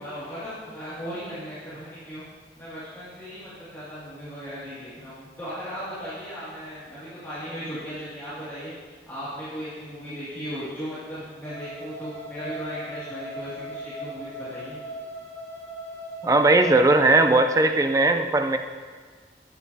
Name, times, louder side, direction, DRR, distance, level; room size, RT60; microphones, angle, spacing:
voice 1, 0.0-2.2 2.6-8.7 9.1-14.8, equal, 15° left, -14 dB, 2.3 m, -37 dB
sound 1, 11.4-17.4, equal, 40° left, 2.9 m, -38 dB
voice 2, 16.2-18.6, right 2 dB, 20° right, 7 dB, 0.4 m, -18 dB
12.0 x 8.0 x 2.8 m, 1.5 s
head